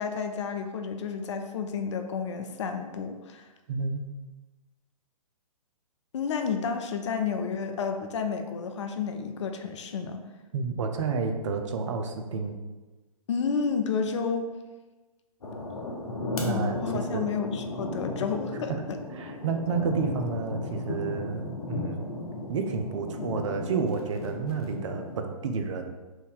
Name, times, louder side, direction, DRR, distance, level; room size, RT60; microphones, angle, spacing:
voice 1, 0.0-3.5 6.1-10.2 13.3-14.5 16.4-19.0, left 6 dB, 50° left, 6 dB, 0.4 m, -31 dB
voice 2, 3.7-4.0 10.5-12.5 16.4-17.3 18.7-18.8 19.1-22.0 22.5-25.9, right 5 dB, 55° right, 5 dB, 0.4 m, -30 dB
sound 1, 15.4-25.2, left 2 dB, 75° left, 0.8 m, -35 dB
3.1 x 2.6 x 3.6 m, 1.2 s
figure-of-eight pair, 125°, 19 cm